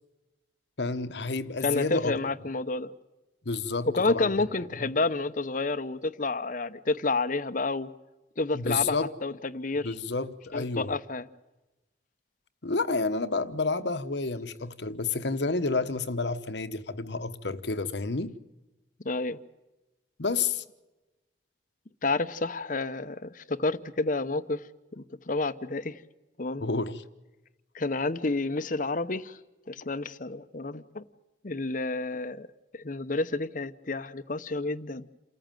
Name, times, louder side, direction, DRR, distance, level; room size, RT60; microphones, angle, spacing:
voice 1, 0.8-2.1 3.4-4.3 4.8-4.9 8.5-9.1 9.8-10.9 12.6-18.3 20.2-20.6 26.6-27.0, left 3 dB, 70° left, 1.2 m, -30 dB
voice 2, 1.6-2.9 3.9-7.9 8.4-9.9 10.5-11.3 19.0-19.4 22.0-24.6 24.9-26.0 26.4-26.7 27.7-29.4 29.7-31.0 31.4-32.5 32.7-35.1, left 3 dB, 45° left, 0.8 m, -30 dB
28.5 x 14.5 x 9.1 m
head